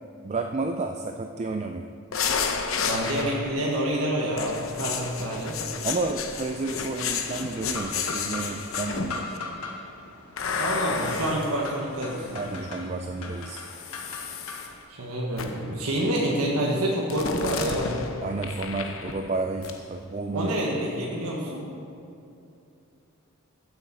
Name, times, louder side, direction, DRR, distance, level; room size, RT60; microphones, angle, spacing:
voice 1, 0.2-1.9 5.2-5.4 5.8-9.3 12.3-13.6 18.2-20.5, right 3 dB, 30° right, 5 dB, 0.3 m, -31 dB
sound 1, 2.1-3.6 4.4-9.4 10.4-12.5 13.5-14.7 15.4-15.7 17.1-19.4 19.6-19.8, left 5 dB, 65° left, 0.8 m, -32 dB
voice 2, 2.9-5.6 10.6-12.4 14.9-18.0 20.3-21.6, right 1 dB, 90° right, -3 dB, 1.5 m, -27 dB
sound 2, 4.4-14.8, left 3 dB, 85° left, 1.3 m, -40 dB
15.0 x 7.8 x 4.2 m, 2.6 s
head